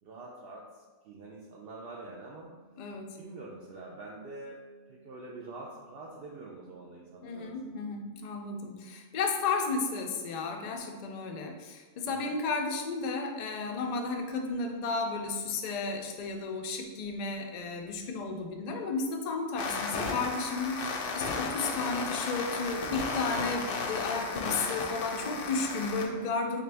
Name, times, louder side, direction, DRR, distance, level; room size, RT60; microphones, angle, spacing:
voice 1, 0.0-2.5 3.2-7.8 12.0-12.3 21.7-22.0 25.2-25.6, right 2 dB, 60° right, -3 dB, 0.7 m, -46 dB
sound 1, 2.0-10.8, right 4 dB, 85° right, 2.0 m, -61 dB
voice 2, 2.8-3.2 7.2-26.6, left 3 dB, 60° left, 3 dB, 0.4 m, -33 dB
sound 2, 19.6-26.1, left 4 dB, 85° left, 1.0 m, -34 dB
3.8 x 3.3 x 3.3 m, 1.4 s
omnidirectional pair, 1.3 m